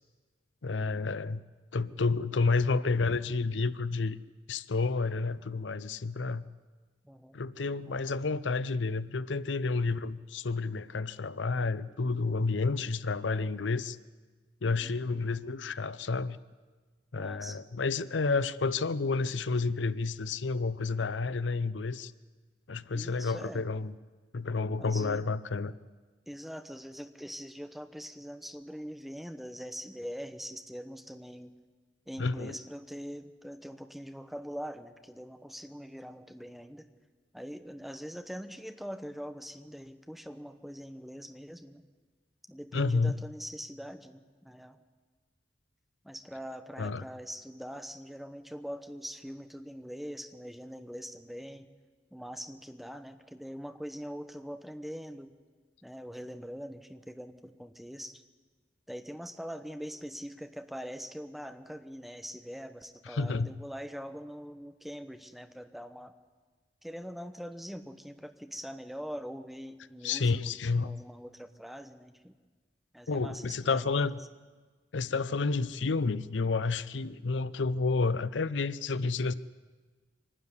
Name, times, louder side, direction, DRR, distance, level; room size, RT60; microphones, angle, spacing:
voice 1, 0.6-1.4 1.7-4.2 4.5-6.5 7.3-14.0 14.6-16.4 17.1-22.1 22.7-23.9 24.3-25.7 32.2-32.6 42.7-43.2 46.8-47.0 63.1-63.6 70.0-70.9 73.1-74.2 74.9-79.3, left 4 dB, 85° left, 16 dB, 0.6 m, -30 dB
voice 2, 7.0-7.4 7.8-8.2 14.6-14.9 17.2-17.7 22.9-23.7 24.8-25.2 26.3-31.5 32.1-36.9 37.3-41.8 42.5-44.8 46.0-51.7 52.1-55.3 55.8-58.2 58.9-66.1 66.8-72.3 72.9-74.1, equal, ahead, 8 dB, 1.0 m, -43 dB
24.5 x 12.5 x 9.8 m, 1.4 s
head